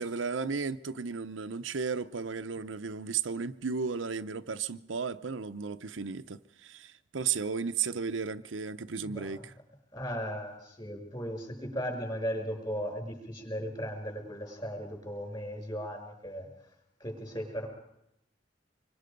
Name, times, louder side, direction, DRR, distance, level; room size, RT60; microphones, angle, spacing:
voice 1, 0.0-9.5, right 5 dB, 90° right, 0.7 m, -34 dB
voice 2, 9.0-9.3 9.9-16.5 17.0-17.7, equal, 25° left, 6.0 m, -37 dB
25.5 x 23.5 x 5.3 m
head